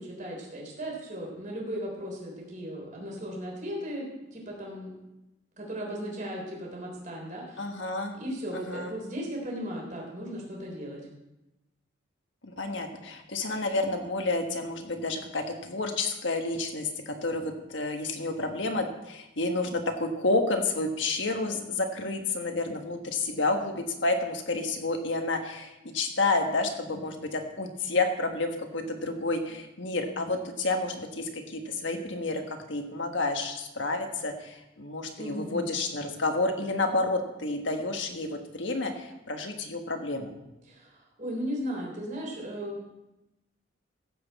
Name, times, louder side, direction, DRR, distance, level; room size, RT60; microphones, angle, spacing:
voice 1, 0.0-4.9 5.6-7.7 8.2-11.0 35.2-35.6 40.7-42.8, equal, 40° right, -2 dB, 3.6 m, -36 dB
voice 2, 7.6-8.2 8.5-8.9 12.4-40.3, left 2 dB, 65° left, 5 dB, 1.4 m, -30 dB
15.0 x 7.8 x 4.2 m, 0.96 s
head